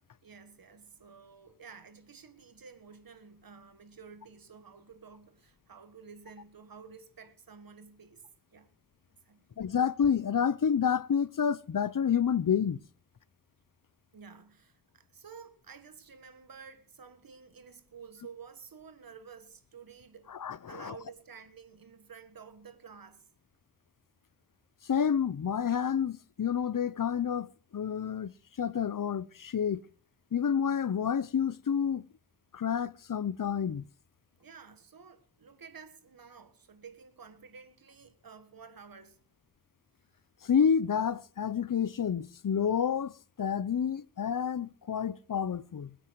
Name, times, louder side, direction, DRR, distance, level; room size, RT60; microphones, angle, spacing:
voice 1, 0.2-8.2 8.5-8.7 9.2-9.6 14.1-20.3 20.7-23.3 34.4-39.2, right 6 dB, 85° right, 1.6 m, -51 dB
voice 2, 9.6-12.8 20.3-21.0 24.8-27.5 27.7-28.3 28.6-29.8 30.3-32.0 32.5-33.9 40.4-46.0, left 7 dB, 70° left, 0.8 m, -29 dB
21.0 x 9.1 x 4.7 m
wide cardioid pair, 60°, 34 cm